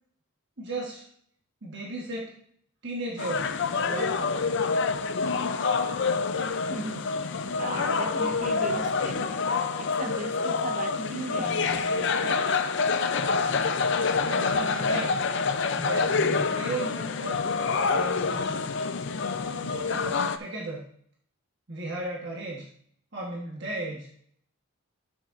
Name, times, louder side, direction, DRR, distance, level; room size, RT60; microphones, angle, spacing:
voice 1, 0.6-1.1 1.6-2.4 2.8-4.4 14.3-15.1 15.8-18.4 19.6-20.8 21.7-22.7 23.1-24.1, right 2 dB, 55° right, 1.3 m, -35 dB
sound 1, 3.2-20.4, left 4 dB, 55° left, 0.5 m, -27 dB
voice 2, 6.4-9.3 9.8-12.5, right 2 dB, 35° right, 0.5 m, -38 dB
11.5 x 6.6 x 2.5 m
head